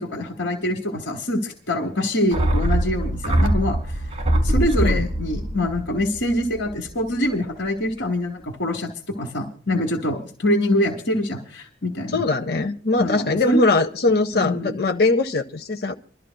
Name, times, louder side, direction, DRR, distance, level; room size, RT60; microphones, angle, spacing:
voice 1, 0.0-3.8 4.4-8.9 9.2-12.2 13.0-13.6 14.3-14.7, left 1 dB, 85° left, 1.3 m, -25 dB
sound 1, 2.3-6.9 7.2-7.3, right 1 dB, 35° right, 1.1 m, -23 dB
voice 2, 12.1-15.9, left 2 dB, 55° left, 0.7 m, -21 dB
28.0 x 12.5 x 2.2 m
head